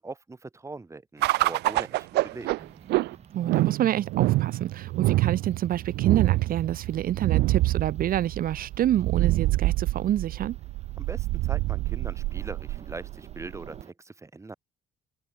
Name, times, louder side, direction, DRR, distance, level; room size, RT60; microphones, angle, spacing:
voice 1, 0.0-2.5 11.0-14.6, right 3 dB, 15° right, 2.8 m, -41 dB
sound 1, 1.2-13.8, right 19 dB, 85° right, 1.5 m, -26 dB
sound 2, 2.6-13.9, right 7 dB, 40° right, 4.3 m, -53 dB
voice 2, 3.3-10.6, right 12 dB, 60° right, 1.3 m, -27 dB
open air
cardioid pair, 110°, 17 cm